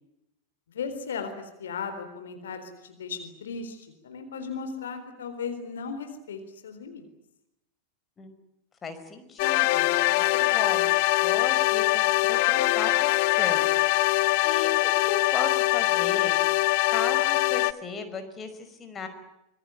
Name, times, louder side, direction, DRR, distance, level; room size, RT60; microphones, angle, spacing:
voice 1, 0.7-7.1, left 5 dB, 65° left, 8 dB, 4.0 m, -36 dB
voice 2, 8.8-13.7 14.4-16.4 16.9-19.1, left 4 dB, 20° left, 8 dB, 5.4 m, -36 dB
sound 1, 9.4-17.7, left 21 dB, 45° left, 1.0 m, -23 dB
26.0 x 22.0 x 8.9 m, 0.87 s
figure-of-eight pair, 90°, 0 cm